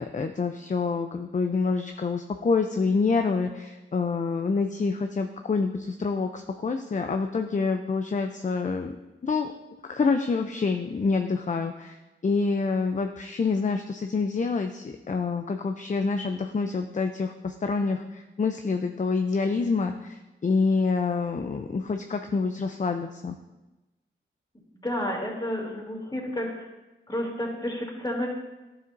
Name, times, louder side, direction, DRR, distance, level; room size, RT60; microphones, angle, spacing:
voice 1, 0.0-9.0 9.2-9.5 9.9-12.0 12.2-23.4, left 4 dB, 35° left, 6 dB, 0.5 m, -27 dB
voice 2, 24.8-26.7 27.1-28.3, left 1 dB, 20° left, -1 dB, 2.6 m, -30 dB
11.0 x 6.9 x 2.6 m, 1.0 s
cardioid pair, 50°, 21 cm